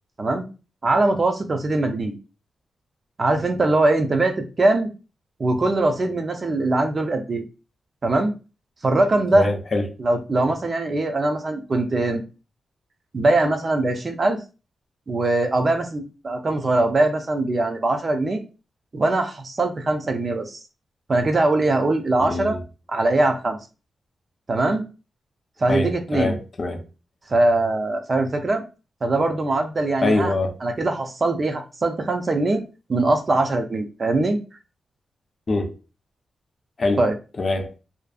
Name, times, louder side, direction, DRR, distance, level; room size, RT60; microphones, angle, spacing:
voice 1, 0.8-2.1 3.2-4.9 5.4-7.4 8.0-8.3 8.8-9.5 10.0-12.2 13.1-14.4 15.1-18.4 18.9-20.6 21.1-22.6 22.9-23.6 24.5-24.8 25.6-26.4 27.3-28.6 29.0-30.3 30.6-32.6 32.9-34.4 37.0-37.1, right 2 dB, 35° right, 0.4 m, -21 dB
voice 2, 9.3-9.8 22.3-22.6 25.7-26.8 30.0-30.5 35.5-35.7 36.8-37.0 37.4-37.7, left 2 dB, 40° left, 0.4 m, -23 dB
2.5 x 2.3 x 2.3 m
wide cardioid pair, 130°, 0 cm